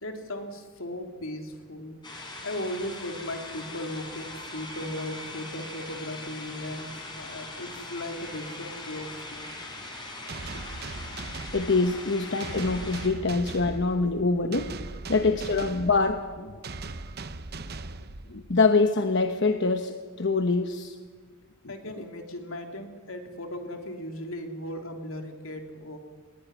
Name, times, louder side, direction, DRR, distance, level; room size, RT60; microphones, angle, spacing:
voice 1, 0.0-2.0 2.4-9.6 11.1-11.2 14.4-14.5 21.7-26.0, left 1 dB, 80° left, 4 dB, 3.3 m, -37 dB
sound 1, 2.0-13.1, left 2 dB, 20° left, 5.0 m, -41 dB
sound 2, 10.3-18.7, right 3 dB, 50° right, 0.9 m, -39 dB
voice 2, 11.2-14.7 15.1-16.6 18.3-21.0, left 3 dB, 60° left, 7 dB, 1.0 m, -25 dB
20.5 x 20.0 x 9.8 m, 1.5 s
head